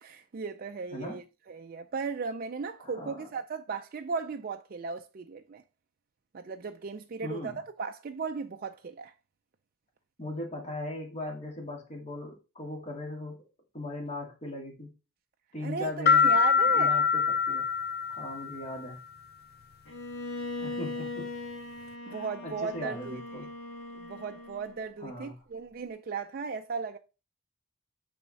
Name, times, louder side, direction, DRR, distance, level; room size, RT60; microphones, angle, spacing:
voice 1, 0.0-5.6 6.3-9.1 15.6-16.9 20.6-20.8 22.1-23.2 23.9-27.0, right 5 dB, 45° right, 0.4 m, -36 dB
voice 2, 2.8-3.3 7.2-7.6 10.2-13.4 13.7-14.9 15.5-16.4 16.7-17.7 18.1-19.0 20.6-21.3 22.1-23.5 25.0-25.3, left 1 dB, 30° left, 2.1 m, -39 dB
sound 1, 16.1-18.7, left 6 dB, 50° left, 0.5 m, -24 dB
Bowed string instrument, 19.9-24.9, left 2 dB, 65° left, 1.9 m, -40 dB
8.8 x 3.5 x 4.0 m
head